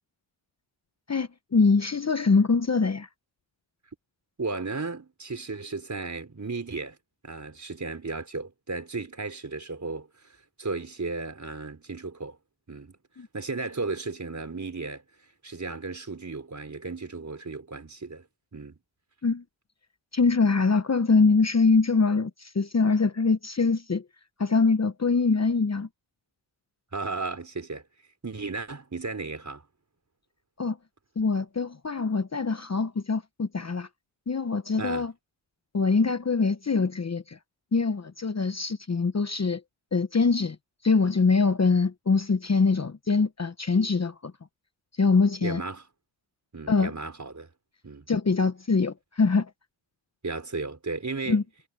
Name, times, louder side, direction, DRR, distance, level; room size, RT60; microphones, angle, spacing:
voice 1, 1.1-3.1 13.2-13.3 19.2-19.4 20.1-24.0 24.4-25.9 30.6-30.8 31.2-33.9 34.3-35.1 35.7-37.4 37.7-39.6 39.9-40.6 40.8-44.3 45.0-45.6 46.7-46.9 48.1-49.5 51.3-51.4, left 4 dB, 30° left, 1.1 m, -23 dB
voice 2, 4.4-7.0 7.2-12.4 12.7-13.0 13.3-15.0 15.4-18.3 18.5-18.8 26.9-27.8 28.2-29.6 34.8-35.1 45.4-45.9 46.5-47.5 47.8-48.1 50.2-51.4, right 3 dB, 35° right, 4.8 m, -34 dB
cardioid pair, 60°, 49 cm